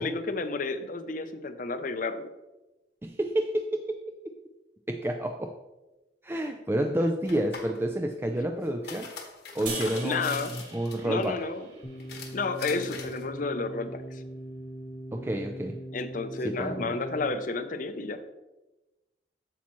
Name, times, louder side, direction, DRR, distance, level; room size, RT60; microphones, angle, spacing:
voice 1, 0.0-2.3 8.4-8.5 10.0-10.5 11.0-11.7 12.3-14.2 15.9-18.2, left 3 dB, 50° left, 10 dB, 0.6 m, -31 dB
voice 2, 3.0-4.0 4.9-5.5 6.2-9.1 9.5-11.4 15.1-15.8 16.4-16.9, right 1 dB, 15° right, 4 dB, 0.3 m, -29 dB
sound 1, 7.2-7.8 8.6-11.2 12.0-13.2, left 4 dB, 65° left, 1.3 m, -42 dB
sound 2, 9.7-12.9, right 2 dB, 45° right, 2.7 m, -41 dB
sound 3, 11.8-17.3, right 1 dB, 30° left, 1.0 m, -41 dB
8.5 x 7.2 x 3.1 m, 1.0 s
head